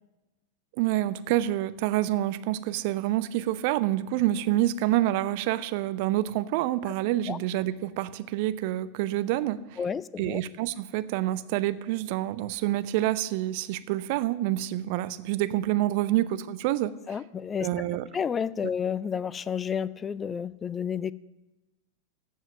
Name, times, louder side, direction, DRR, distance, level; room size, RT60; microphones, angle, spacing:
voice 1, 0.8-9.8 10.2-16.9 17.6-18.1, right 14 dB, 45° right, 15 dB, 0.6 m, -27 dB
voice 2, 9.8-10.4 17.1-17.7 18.1-21.1, left 7 dB, 20° left, 19 dB, 0.4 m, -30 dB
14.5 x 5.6 x 8.9 m, 1.1 s
figure-of-eight pair, 90°, 0 cm